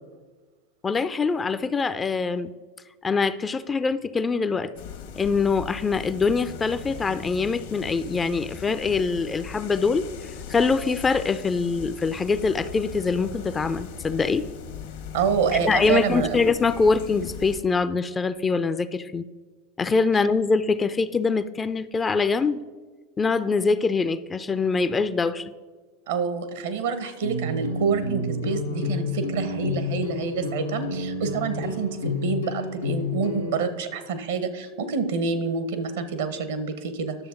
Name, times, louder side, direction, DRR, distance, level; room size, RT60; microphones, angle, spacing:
voice 1, 0.8-2.5 3.0-4.7 5.2-14.5 15.5-19.3 19.8-22.6 23.2-25.5, left 4 dB, 20° left, 14 dB, 0.4 m, -24 dB
sound 1, 4.7-17.6, left 6 dB, 70° left, 1.2 m, -39 dB
voice 2, 15.1-16.4 26.1-37.2, right 5 dB, 70° right, 10 dB, 0.9 m, -27 dB
sound 2, 27.2-33.6, left 2 dB, 90° left, 0.9 m, -29 dB
10.5 x 6.8 x 3.8 m, 1.4 s
figure-of-eight pair, 85°, 0 cm